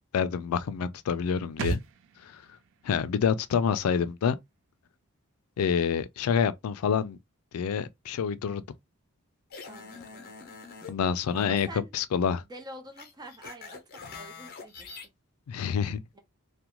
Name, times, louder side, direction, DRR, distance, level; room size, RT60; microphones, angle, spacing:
voice 1, 0.1-1.8 2.3-2.4 2.8-4.3 5.6-7.2 7.5-8.6 10.9-11.7 11.9-12.4 15.5-16.0, left 7 dB, 90° left, 0.4 m, -27 dB
sound 1, 1.6-5.1 5.4-5.5, right 5 dB, 60° right, 0.3 m, -39 dB
sound 2, 9.5-10.9 11.3-11.5 13.0-15.1, left 4 dB, 45° left, 0.7 m, -44 dB
voice 2, 9.7-10.4 11.3-11.9 12.4-14.9 16.1-16.2, right 1 dB, 20° right, 0.6 m, -46 dB
2.4 x 2.2 x 2.9 m
head